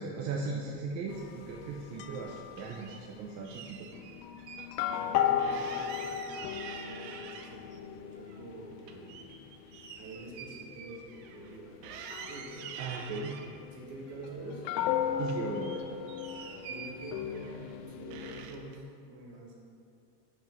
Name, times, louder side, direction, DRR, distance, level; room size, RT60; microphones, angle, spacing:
voice 1, 0.0-3.9 12.8-13.4 15.2-15.8, right 4 dB, 35° right, -1 dB, 0.6 m, -37 dB
sound 1, 1.1-3.0 3.9-18.5, left 9 dB, 85° left, 0.6 m, -37 dB
sound 2, 2.0-3.0 3.4-4.7 5.0-5.1 5.4-7.8 8.2-11.6 11.8-13.5 14.1-14.9 15.2-17.7 18.1-18.8, right 7 dB, 90° right, 0.7 m, -47 dB
voice 2, 4.8-9.3 10.0-12.0 12.3-12.5 13.7-14.7 16.7-19.5, right 2 dB, 55° right, -2 dB, 1.5 m, -47 dB
5.5 x 5.5 x 3.8 m, 2.5 s
supercardioid pair, 125°, 48 cm